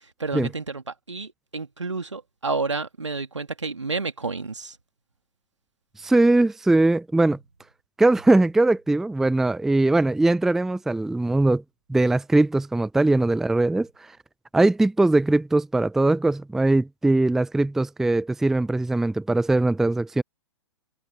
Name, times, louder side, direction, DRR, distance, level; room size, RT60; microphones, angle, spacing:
voice 1, 0.2-4.8, right 3 dB, 80° right, 2.5 m, -30 dB
voice 2, 6.0-7.4 8.0-11.6 11.9-13.9 14.5-20.2, right 2 dB, 5° right, 0.5 m, -20 dB
figure-of-eight pair, 115°, 15 cm